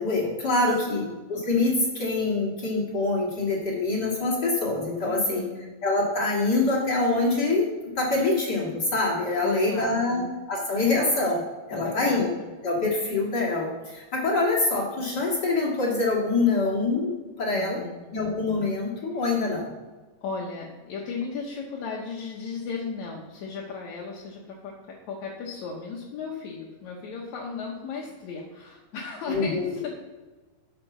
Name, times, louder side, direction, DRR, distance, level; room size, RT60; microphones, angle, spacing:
voice 1, 0.0-5.4 5.8-7.7 8.0-11.4 11.7-12.3 12.6-17.8 18.1-19.7 29.3-29.7, left 3 dB, 35° left, -4 dB, 2.1 m, -25 dB
voice 2, 0.6-1.2 5.0-5.7 9.4-10.3 11.7-12.5 17.5-18.1 19.1-19.2 20.2-29.9, left 5 dB, 65° left, -2 dB, 2.1 m, -36 dB
10.5 x 7.2 x 6.1 m, 1.3 s
omnidirectional pair, 4.3 m